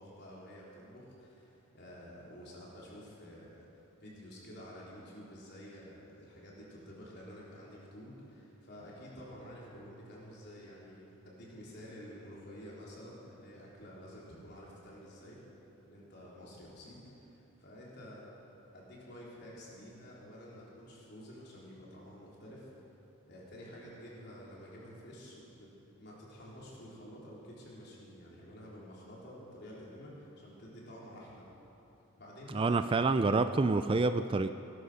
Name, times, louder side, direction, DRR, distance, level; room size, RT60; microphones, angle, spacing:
voice 1, 0.0-3.6 4.0-15.4 15.8-18.3 18.7-22.7 23.3-31.4 32.2-32.8, equal, 50° left, -5 dB, 4.2 m, -50 dB
voice 2, 32.5-34.5, right 3 dB, 25° right, 10 dB, 0.3 m, -27 dB
18.5 x 11.5 x 6.4 m, 3.0 s
head